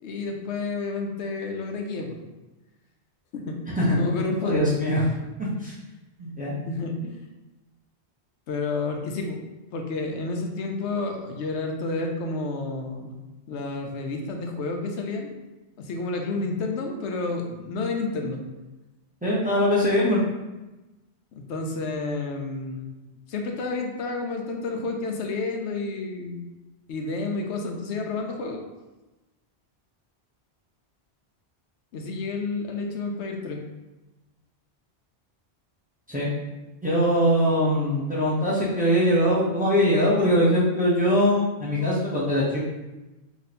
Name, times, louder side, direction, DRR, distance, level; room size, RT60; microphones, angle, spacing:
voice 1, 0.0-2.2 3.3-3.5 4.0-4.7 6.6-7.2 8.5-9.4 9.7-13.2 13.5-15.3 15.8-18.4 21.4-22.9 23.3-26.4 26.9-28.6 31.9-33.6, left 3 dB, 90° left, 3 dB, 0.9 m, -30 dB
voice 2, 3.7-4.0 4.4-5.0 5.4-5.7 6.2-6.5 19.2-20.2 36.1-36.3 36.8-42.6, equal, 10° right, -7 dB, 0.7 m, -22 dB
3.0 x 2.6 x 4.2 m, 1.1 s
omnidirectional pair, 1.1 m